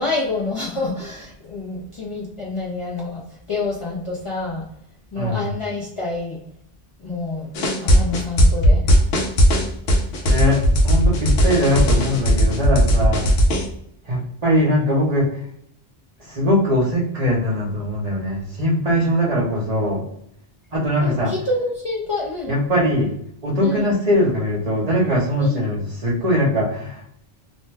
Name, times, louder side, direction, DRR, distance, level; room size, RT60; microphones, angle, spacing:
voice 1, 0.0-3.2 3.5-4.6 5.1-6.4 7.0-7.5 7.8-8.8 21.0-22.5 23.6-23.9 25.4-25.6, left 3 dB, 40° left, -5 dB, 0.6 m, -27 dB
voice 2, 5.2-5.5 10.2-13.2 14.1-15.3 16.3-20.0 20.7-21.3 22.5-23.1 23.4-27.0, left 1 dB, 40° right, -3 dB, 0.8 m, -21 dB
sound 1, 7.5-13.7, equal, 80° left, 0.9 m, -16 dB
2.6 x 2.2 x 3.2 m, 0.71 s
omnidirectional pair, 1.0 m